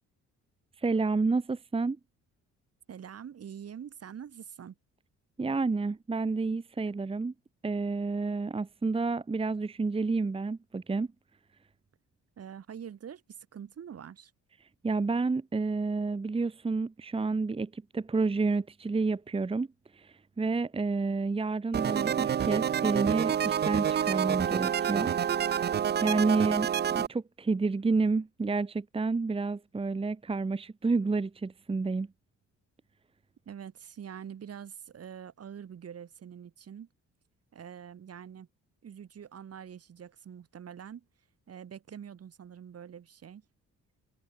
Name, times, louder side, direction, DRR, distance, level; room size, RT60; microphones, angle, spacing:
voice 1, 0.8-2.0 5.4-7.3 7.6-11.1 14.8-19.7 19.9-25.6 26.0-32.1, right 3 dB, 20° right, 1.0 m, -30 dB
voice 2, 2.9-4.8 12.4-14.3 33.5-36.9 37.5-38.5 38.8-41.1 41.5-43.4, right 8 dB, 55° right, 3.8 m, -45 dB
sound 1, 21.7-27.1, right 9 dB, 35° right, 0.5 m, -28 dB
cardioid pair, 90°, 30 cm